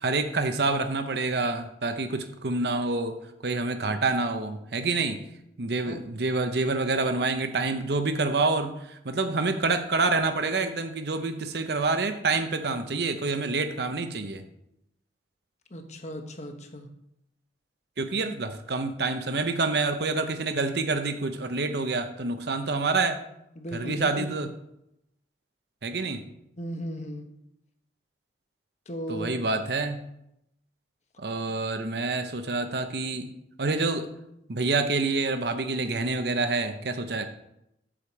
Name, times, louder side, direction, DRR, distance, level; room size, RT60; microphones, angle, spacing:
voice 1, 0.0-3.2 3.4-5.2 5.6-14.4 18.0-23.2 23.7-24.5 25.8-26.2 29.1-30.0 31.2-33.3 33.6-34.1 34.5-37.3, right 3 dB, 60° right, 8 dB, 0.8 m, -27 dB
voice 2, 15.7-16.9 23.6-24.3 26.6-27.3 28.9-29.4, equal, 40° left, 5 dB, 1.1 m, -36 dB
8.6 x 5.1 x 7.2 m, 0.81 s
head